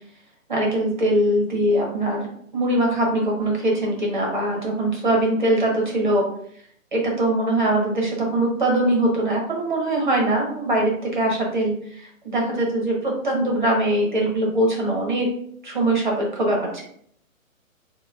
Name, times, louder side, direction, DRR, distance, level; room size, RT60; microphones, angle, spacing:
voice 1, 0.5-6.3 6.9-15.3 15.6-16.8, right 1 dB, 35° right, -1 dB, 0.8 m, -22 dB
6.4 x 2.2 x 2.3 m, 0.65 s
hypercardioid pair, 180°, 42 cm